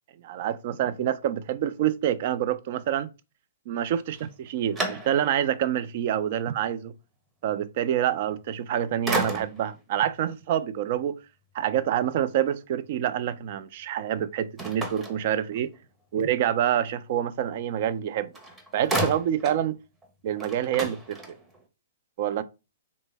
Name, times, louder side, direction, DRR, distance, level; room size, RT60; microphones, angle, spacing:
voice 1, 0.2-3.1 3.7-6.9 7.4-11.2 11.5-15.7 16.1-18.3 18.7-19.8 20.2-21.4 22.2-22.4, right 10 dB, 50° right, 0.3 m, -27 dB
sound 1, 4.1-5.5 6.1-6.2 8.4-8.7 9.1-9.8 14.6-15.9 18.0-18.1 18.3-19.7 20.0-20.1 20.4-21.6, right 1 dB, 10° right, 0.7 m, -33 dB
3.3 x 2.0 x 3.3 m
figure-of-eight pair, 120°, 0 cm